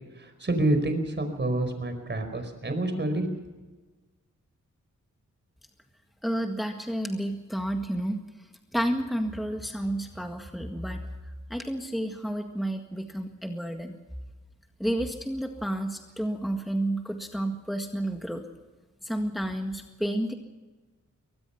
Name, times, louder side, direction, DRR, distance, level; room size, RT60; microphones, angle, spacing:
voice 1, 0.2-3.3, right 1 dB, 35° right, 7 dB, 4.8 m, -28 dB
voice 2, 6.2-8.2 8.7-11.1 11.5-13.9 14.8-18.4 19.0-20.3, right 1 dB, ahead, 4 dB, 1.8 m, -30 dB
23.5 x 19.0 x 5.8 m, 1.2 s
cardioid pair, 70°, 30 cm